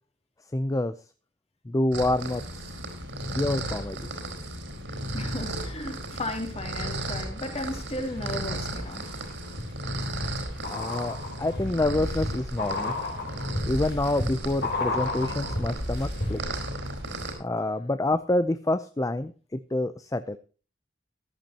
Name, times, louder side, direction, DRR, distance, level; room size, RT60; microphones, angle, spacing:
voice 1, 0.5-0.9 1.7-2.4 3.3-4.0 10.7-12.9 13.7-16.7 17.4-20.4, left 1 dB, 20° left, 12 dB, 0.5 m, -27 dB
sound 1, 1.9-17.3, right 1 dB, 80° right, 4.5 m, -35 dB
voice 2, 5.1-9.1, left 1 dB, 35° left, 3 dB, 2.8 m, -35 dB
sound 2, 7.6-8.3 8.8-16.7 16.9-17.0, left 2 dB, 65° left, 3.2 m, -33 dB
14.5 x 12.0 x 2.9 m, 0.36 s
head